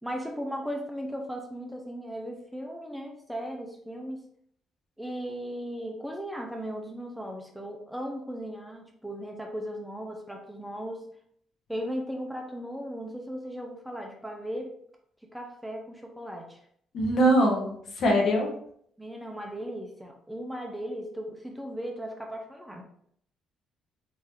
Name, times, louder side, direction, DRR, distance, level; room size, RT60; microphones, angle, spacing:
voice 1, 0.0-4.2 5.0-11.1 11.7-14.7 15.3-16.6 19.0-22.8, equal, ahead, 1 dB, 0.7 m, -37 dB
voice 2, 16.9-18.5, right 1 dB, 65° left, 0 dB, 1.1 m, -23 dB
3.8 x 2.7 x 3.2 m, 0.65 s
cardioid pair, 95°, 0 cm